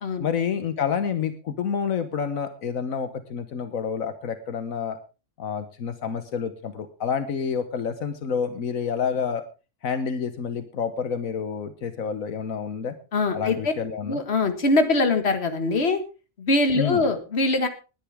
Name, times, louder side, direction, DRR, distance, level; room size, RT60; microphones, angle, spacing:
voice 1, 0.2-5.0 5.4-9.4 9.8-12.9 13.3-14.2 16.7-17.0, left 6 dB, 80° left, 9 dB, 1.5 m, -28 dB
voice 2, 13.1-13.7 14.1-16.0 16.4-17.7, left 2 dB, 50° left, 7 dB, 2.0 m, -22 dB
20.5 x 10.5 x 3.6 m, 0.32 s
omnidirectional pair, 1.4 m